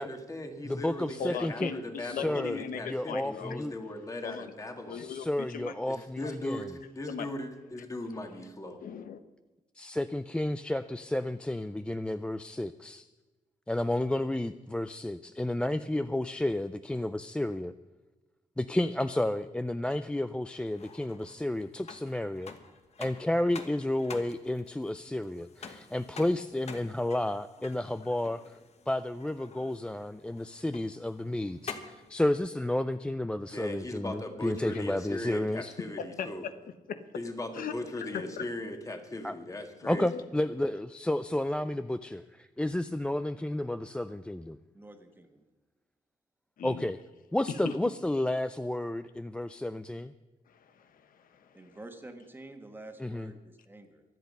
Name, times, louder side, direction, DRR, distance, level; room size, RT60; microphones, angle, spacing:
voice 1, 0.0-5.1 5.9-8.8 33.5-36.4 37.1-40.1, left 1 dB, 25° left, 5 dB, 1.8 m, -39 dB
voice 2, 0.6-1.7 2.0-3.7 4.9-6.7 9.8-13.1 13.7-17.7 18.6-22.5 23.0-28.6 28.9-35.7 39.2-39.3 39.9-44.6 46.6-47.0 47.3-50.1 53.0-53.3, left 1 dB, 5° left, 10 dB, 0.3 m, -31 dB
voice 3, 1.2-3.6 4.2-4.5 4.9-5.7 7.1-7.3 8.8-9.2 34.7-34.8 36.2-36.3 36.9-37.0 37.5-37.7 38.0-38.4 39.9-40.2 46.6-46.9 47.6-47.8 50.5-51.6, left 7 dB, 90° left, 10 dB, 1.0 m, -38 dB
sound 1, 20.5-32.1, left 5 dB, 50° left, 1.3 m, -48 dB
voice 4, 37.5-37.9 38.2-38.4 44.7-45.4 51.5-54.0, right 2 dB, 15° right, 5 dB, 1.5 m, -49 dB
24.0 x 8.3 x 5.4 m, 1.2 s
wide cardioid pair, 155°, 14 cm